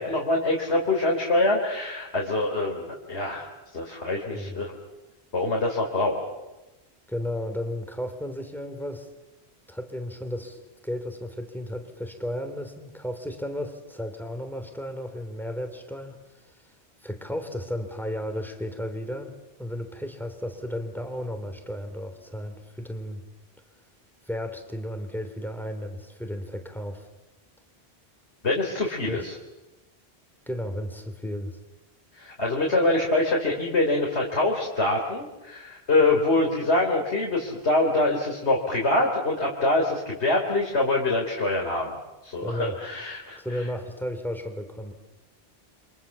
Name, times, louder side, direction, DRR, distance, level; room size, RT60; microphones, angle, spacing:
voice 1, 0.0-3.5 3.7-4.7 5.3-6.3 28.4-29.3 32.2-42.0 42.2-43.6, left 2 dB, 85° left, -1 dB, 3.8 m, -25 dB
voice 2, 4.3-4.7 7.1-9.1 9.7-16.2 16.5-16.7 17.0-23.2 24.2-27.1 29.1-29.3 30.5-31.6 42.4-42.8 43.4-44.9, equal, ahead, 6 dB, 3.6 m, -34 dB
29.5 x 26.0 x 7.2 m, 1.0 s
omnidirectional pair, 1.1 m